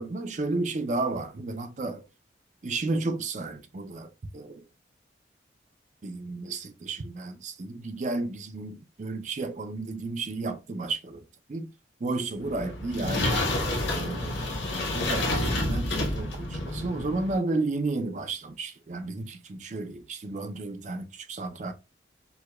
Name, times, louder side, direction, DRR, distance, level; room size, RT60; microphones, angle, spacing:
voice 1, 0.0-2.0 2.6-4.6 6.0-11.2 11.5-11.7 12.0-13.5 13.9-14.5 14.9-21.7, right 3 dB, 40° right, 0.4 m, -32 dB
sound 1, 12.4-17.4, left 1 dB, 80° left, 1.0 m, -29 dB
4.7 x 2.2 x 2.2 m
head